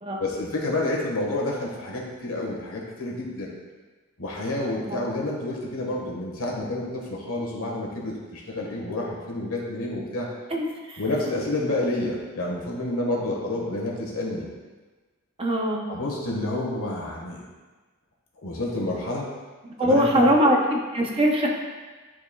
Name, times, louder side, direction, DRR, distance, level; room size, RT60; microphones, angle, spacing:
voice 1, 0.2-3.5 4.2-10.3 11.0-14.5 15.9-17.4 18.4-19.3 19.8-20.5, left 2 dB, 70° left, -2 dB, 1.5 m, -29 dB
voice 2, 10.5-11.0 15.4-15.9 19.8-21.5, equal, 25° right, -1 dB, 0.7 m, -22 dB
11.0 x 4.6 x 2.3 m, 1.3 s
head